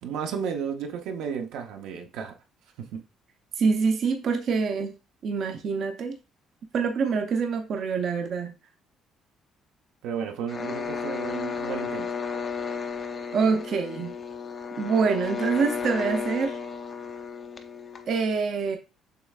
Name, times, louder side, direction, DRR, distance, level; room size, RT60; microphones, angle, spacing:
voice 1, 0.0-2.3 2.8-3.0 10.0-12.1, right 7 dB, 80° right, 0.7 m, -33 dB
voice 2, 3.6-4.9 5.2-6.2 6.7-8.5 13.3-14.1 14.8-16.6 18.1-18.8, right 5 dB, 50° right, 0.5 m, -25 dB
sound 1, 10.5-18.2, left 5 dB, 25° left, 0.4 m, -33 dB
6.7 x 3.1 x 2.4 m
cardioid pair, 155°, 0 cm